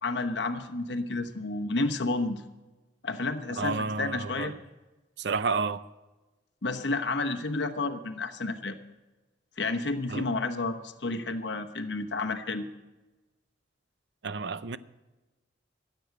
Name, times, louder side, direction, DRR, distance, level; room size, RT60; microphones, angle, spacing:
voice 1, 0.0-2.4 3.0-4.5 6.6-8.8 9.6-12.7, left 3 dB, 65° left, 1.0 m, -31 dB
voice 2, 3.6-4.5 5.2-5.8 10.1-10.2 14.2-14.8, right 4 dB, 65° right, 0.6 m, -30 dB
15.0 x 8.0 x 8.2 m
head